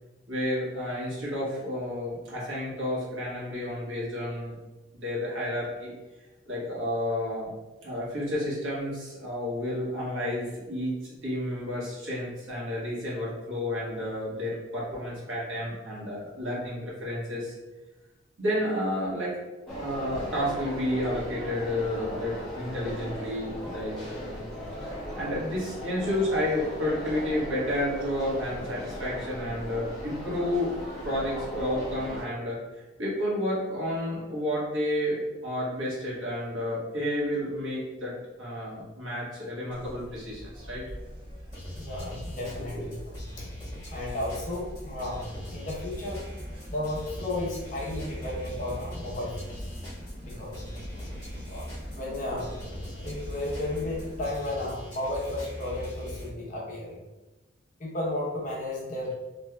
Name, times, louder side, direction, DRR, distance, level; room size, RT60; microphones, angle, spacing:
voice 1, 0.3-4.6 4.9-5.9 6.5-7.5 7.8-17.5 18.4-19.4 19.8-24.4 25.2-30.7 31.0-40.8 42.4-42.9, left 1 dB, 80° right, -6 dB, 1.4 m, -31 dB
sound 1, 19.7-32.2, equal, ahead, 0.9 m, -38 dB
sound 2, 39.7-54.3, equal, 25° right, 1.1 m, -43 dB
sound 3, 41.5-56.3, equal, 20° left, 1.4 m, -41 dB
voice 2, 41.8-43.0 43.4-43.5 43.9-46.2 46.7-49.7 50.2-50.6 51.5-51.6 51.9-52.5 53.0-57.0 57.8-59.1, left 1 dB, 40° left, -4 dB, 0.8 m, -33 dB
3.4 x 3.2 x 2.2 m, 1.1 s
head